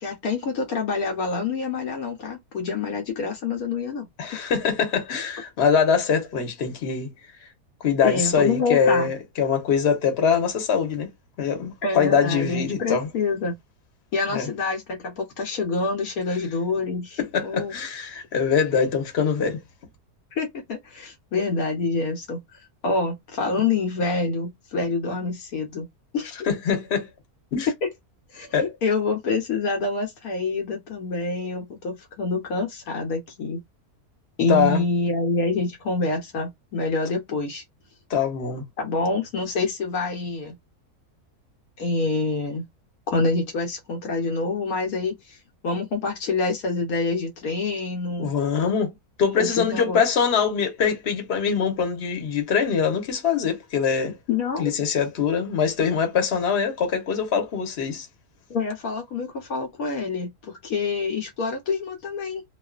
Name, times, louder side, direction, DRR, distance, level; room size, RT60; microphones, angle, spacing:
voice 1, 0.0-4.1 4.3-4.4 8.0-9.1 11.8-13.5 14.1-17.7 20.3-22.4 22.8-25.9 26.1-26.3 27.8-27.9 28.3-33.6 34.4-37.6 38.8-40.6 41.8-42.6 43.1-45.4 45.6-48.3 49.4-50.0 54.3-54.7 58.5-62.4, left 3 dB, 75° left, 1.1 m, -26 dB
voice 2, 4.2-7.1 7.8-11.1 11.4-13.1 14.3-14.5 17.2-19.6 26.5-27.1 27.5-27.7 28.5-28.7 34.5-34.8 38.1-38.7 48.2-48.9 49.2-54.2 54.6-58.1, left 6 dB, 50° left, 1.0 m, -23 dB
2.4 x 2.3 x 2.3 m
omnidirectional pair, 1.6 m